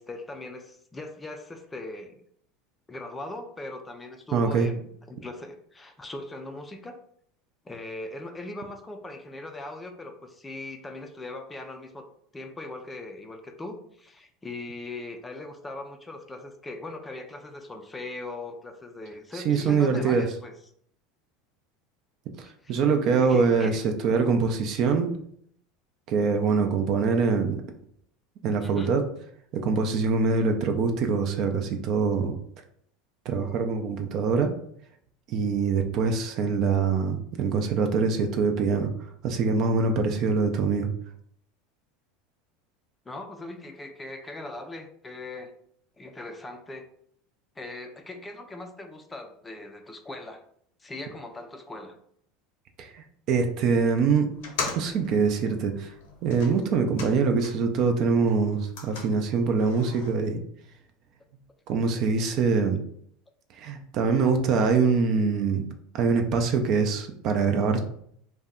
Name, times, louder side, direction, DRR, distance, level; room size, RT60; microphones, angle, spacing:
voice 1, 0.0-2.2 2.9-7.0 7.6-12.1 12.3-20.6 22.4-22.7 23.2-23.8 28.6-29.0 43.1-45.5 46.0-46.8 47.6-50.4 50.8-52.0, left 2 dB, 15° left, 6 dB, 0.4 m, -40 dB
voice 2, 4.3-4.7 19.3-20.2 22.4-25.1 26.1-27.6 28.4-29.0 29.5-32.3 33.3-34.5 35.3-38.9 39.2-40.9 52.8-54.3 54.8-55.9 56.2-60.4 61.7-62.8 63.6-65.7 65.9-67.8, right 5 dB, 50° right, 5 dB, 0.5 m, -24 dB
sound 1, 54.3-57.8 58.1-60.1, left 4 dB, 75° left, 0.7 m, -39 dB
2.6 x 2.2 x 3.6 m, 0.66 s
supercardioid pair, 120°, 0 cm